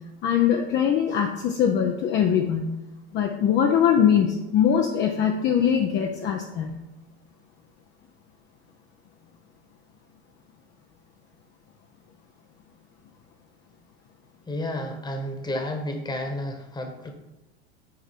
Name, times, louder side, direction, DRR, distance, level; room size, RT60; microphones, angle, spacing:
voice 1, 0.2-2.7 3.1-6.8, left 8 dB, 35° left, 2 dB, 0.8 m, -22 dB
voice 2, 14.5-17.1, left 1 dB, 10° left, 4 dB, 1.4 m, -31 dB
8.5 x 4.8 x 4.5 m, 0.99 s
hypercardioid pair, 105°, 33 cm